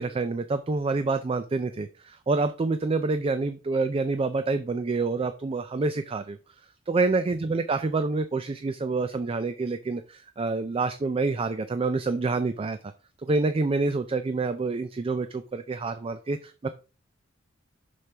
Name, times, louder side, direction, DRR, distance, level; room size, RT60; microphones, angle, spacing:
voice 1, 0.0-6.4 6.9-12.8 13.2-16.7, right 3 dB, 30° right, 10 dB, 0.4 m, -27 dB
6.3 x 5.9 x 3.4 m, 0.34 s
head